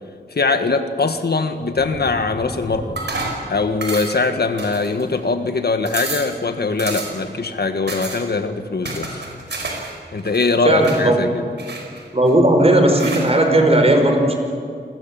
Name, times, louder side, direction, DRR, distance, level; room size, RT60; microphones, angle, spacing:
voice 1, 0.3-3.0 3.5-9.3 10.1-11.5, left 3 dB, 65° left, 7 dB, 1.6 m, -21 dB
sound 1, 1.7-3.8 4.2-4.6, equal, 60° right, 7.8 m, -36 dB
sound 2, 3.0-3.4 3.8-4.3 4.6-5.2 5.5-5.6 5.9-6.3 6.8-7.3 7.9-8.2 8.8-9.9 10.2-11.0 11.6-12.3 13.0-13.3, right 3 dB, 85° right, 5.1 m, -29 dB
voice 2, 10.6-11.2 12.1-14.4, right 1 dB, 35° right, 4 dB, 4.9 m, -15 dB
28.0 x 20.5 x 7.5 m, 2.3 s
wide cardioid pair, 70°, 18 cm